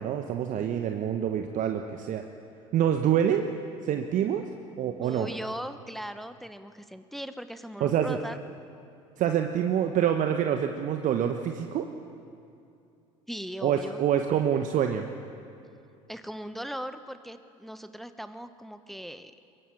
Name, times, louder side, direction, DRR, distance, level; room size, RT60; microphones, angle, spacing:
voice 1, 0.0-2.2 2.7-3.5 3.8-4.4 4.8-5.3 7.8-8.2 9.2-11.9 13.6-15.1, right 9 dB, 45° right, 5 dB, 1.2 m, -26 dB
voice 2, 5.0-8.4 13.3-14.0 16.1-19.3, equal, ahead, 10 dB, 1.0 m, -39 dB
22.5 x 20.5 x 8.6 m, 2.5 s
figure-of-eight pair, 60°, 18 cm